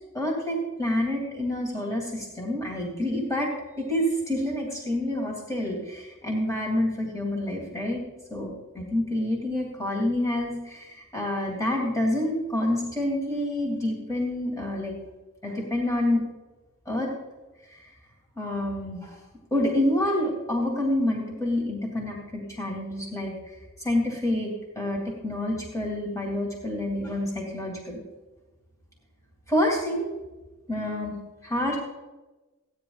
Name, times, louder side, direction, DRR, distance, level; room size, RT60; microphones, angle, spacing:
voice 1, 0.1-3.5 3.8-8.0 8.3-15.0 15.4-16.2 16.9-17.1 17.7-17.8 18.4-19.2 19.5-28.0 29.5-30.1 30.7-31.2 31.4-31.8, left 1 dB, 15° left, -2 dB, 2.4 m, -28 dB
15.5 x 9.7 x 3.9 m, 1.1 s
head